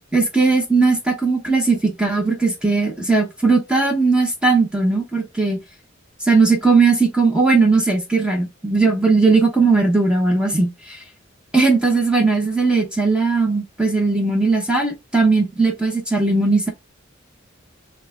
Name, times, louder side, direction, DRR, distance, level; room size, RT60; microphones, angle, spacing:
voice 1, 0.1-5.6 6.2-11.0 11.5-16.7, right 3 dB, 5° right, 0.9 m, -18 dB
4.6 x 2.2 x 3.7 m
head